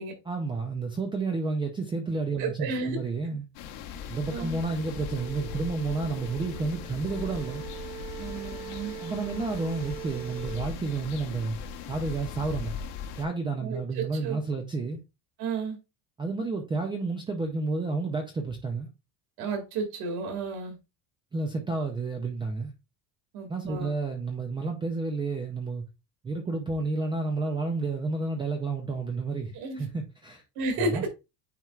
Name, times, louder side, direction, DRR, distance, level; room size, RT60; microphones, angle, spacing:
voice 1, 0.3-3.4 4.1-7.6 9.0-11.6 11.9-12.8 13.2-15.0 16.2-18.9 21.3-22.7 23.5-25.8 26.2-30.4 30.8-31.1, right 3 dB, 10° right, 0.4 m, -31 dB
voice 2, 2.4-3.0 4.3-4.6 8.2-8.9 13.6-14.4 15.4-15.8 19.4-20.8 23.3-23.9 29.5-29.9 30.6-31.0, right 3 dB, 55° right, 2.2 m, -32 dB
sound 1, 3.5-13.3, left 7 dB, 65° left, 1.1 m, -39 dB
sound 2, 4.5-10.6, right 12 dB, 85° right, 3.1 m, -42 dB
9.2 x 4.3 x 2.4 m
cardioid pair, 170°, 43 cm